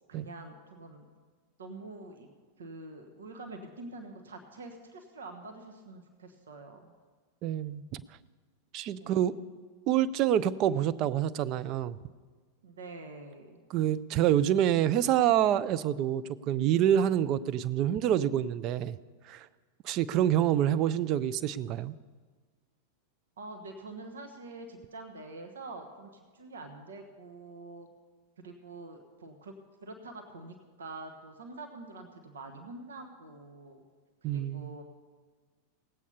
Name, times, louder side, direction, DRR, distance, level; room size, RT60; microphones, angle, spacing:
voice 1, 0.1-1.1 1.6-2.3 2.6-6.9 9.0-9.3 12.6-13.6 20.5-20.9 23.4-27.9 28.4-29.5 29.8-33.8 34.2-34.8, right 2 dB, 65° right, 4 dB, 1.4 m, -46 dB
voice 2, 7.4-8.0 8.7-9.3 9.9-12.0 13.7-19.0 19.3-19.5 19.8-22.0 34.2-34.7, right 11 dB, 40° right, 15 dB, 0.5 m, -27 dB
18.0 x 8.4 x 5.5 m, 1.5 s
figure-of-eight pair, 90°, 0 cm